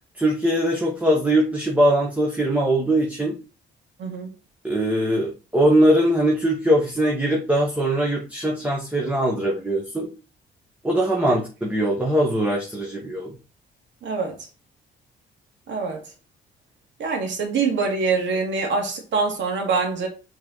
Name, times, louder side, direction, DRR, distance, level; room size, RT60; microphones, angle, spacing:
voice 1, 0.1-3.4 4.6-10.1 10.8-13.3, right 1 dB, 5° right, 1.6 m, -21 dB
voice 2, 4.0-4.3 14.0-14.3 15.7-16.0 17.0-20.1, right 4 dB, 70° right, 2.2 m, -24 dB
6.2 x 4.1 x 4.1 m
cardioid pair, 90°, 20 cm